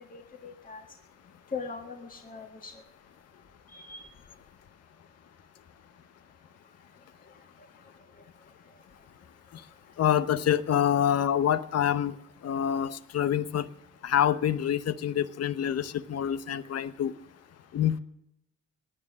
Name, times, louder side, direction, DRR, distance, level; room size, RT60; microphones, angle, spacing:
voice 1, 0.1-0.8 1.5-2.7 3.7-4.1, left 4 dB, 30° left, 4 dB, 1.6 m, -40 dB
voice 2, 10.0-12.1 12.4-13.7 14.0-17.1 17.7-18.0, left 10 dB, 55° left, 15 dB, 0.9 m, -26 dB
17.0 x 10.0 x 6.2 m, 0.80 s
cardioid pair, 90°, 30 cm